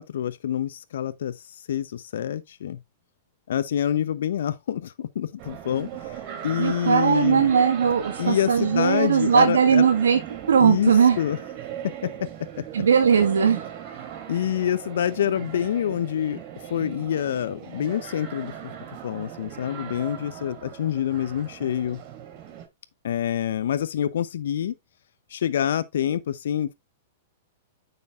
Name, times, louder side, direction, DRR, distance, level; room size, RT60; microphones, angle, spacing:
voice 1, 0.0-1.3 1.7-2.8 3.5-5.9 6.4-7.5 8.2-9.9 10.6-11.4 14.3-16.4 16.7-18.5 19.0-22.0 23.0-24.7 25.3-26.7, left 10 dB, 70° left, 0.8 m, -26 dB
sound 1, 5.4-22.7, right 10 dB, 45° right, 3.2 m, -38 dB
voice 2, 6.6-10.2 10.5-11.2 12.7-13.6, right 7 dB, 80° right, 1.6 m, -19 dB
9.4 x 7.1 x 2.5 m
hypercardioid pair, 115°, 0 cm